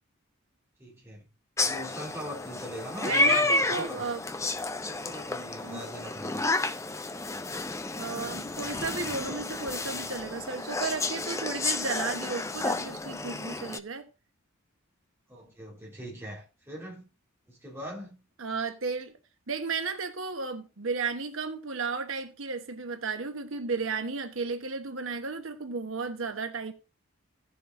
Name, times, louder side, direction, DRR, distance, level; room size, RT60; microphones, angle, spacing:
voice 1, 0.8-1.3 1.6-4.1 4.8-6.4 15.3-17.1 17.5-18.2, equal, 10° right, 3.6 m, -41 dB
sound 1, 1.6-13.8, left 2 dB, 15° left, 0.5 m, -31 dB
voice 2, 3.0-4.2 5.6-5.9 8.0-14.0 18.4-19.2 19.5-26.7, right 4 dB, 75° right, 1.1 m, -34 dB
16.5 x 7.0 x 2.5 m
head